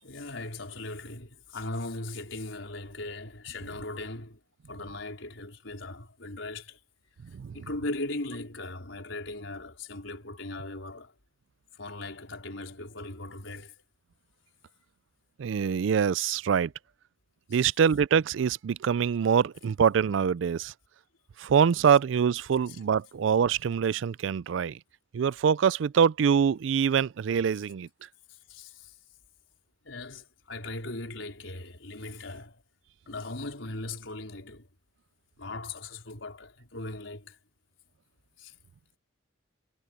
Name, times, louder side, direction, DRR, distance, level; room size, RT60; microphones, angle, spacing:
voice 1, 0.0-4.4 4.7-6.8 7.5-11.2 11.7-13.8 17.5-17.6 22.7-22.8 28.3-28.9 29.8-32.6 33.0-34.7 35.4-37.4 38.4-38.5, left 2 dB, 80° left, 4.4 m, -39 dB
voice 2, 15.4-16.7 17.5-20.7 21.4-24.8 25.1-27.9, right 7 dB, 75° right, 0.4 m, -24 dB
head